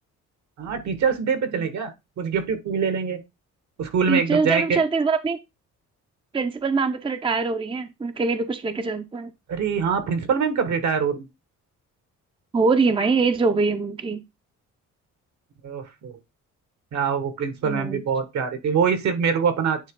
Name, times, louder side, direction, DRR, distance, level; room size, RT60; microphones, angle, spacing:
voice 1, 0.6-1.9 2.2-3.2 3.8-4.8 9.5-11.3 15.6-16.2 16.9-19.9, right 6 dB, 65° right, 1.5 m, -24 dB
voice 2, 4.1-5.4 6.3-9.3 12.5-14.2 17.6-18.0, right 4 dB, 15° right, 0.6 m, -23 dB
9.2 x 3.1 x 3.7 m
cardioid pair, 90°, 30 cm